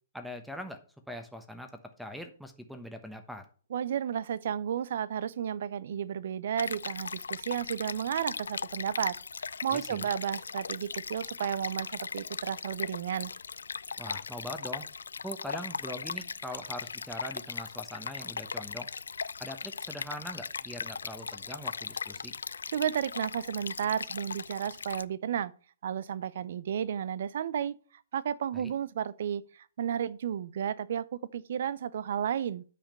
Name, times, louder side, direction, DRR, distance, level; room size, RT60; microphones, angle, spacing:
voice 1, 0.1-0.8 1.1-1.7 2.0-3.4 9.7-10.1 14.0-14.9 15.2-18.9 19.4-22.3 28.5-28.7, equal, ahead, 1.0 m, -42 dB
voice 2, 3.7-9.2 9.6-13.3 22.7-25.5 25.8-27.7 28.1-32.6, right 9 dB, 60° right, 0.5 m, -32 dB
Stream, 6.6-25.0, left 5 dB, 80° left, 0.3 m, -38 dB
9.1 x 5.1 x 5.4 m
hypercardioid pair, 130°, 0 cm